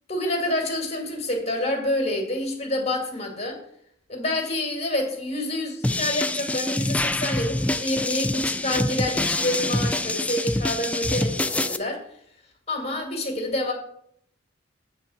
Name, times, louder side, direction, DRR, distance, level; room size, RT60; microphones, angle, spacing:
voice 1, 0.1-3.6 4.1-12.0 12.7-13.7, left 1 dB, 35° left, 2 dB, 2.0 m, -28 dB
sound 1, 5.8-11.8, left 2 dB, 5° left, 0.3 m, -26 dB
8.4 x 4.0 x 7.0 m, 0.69 s
head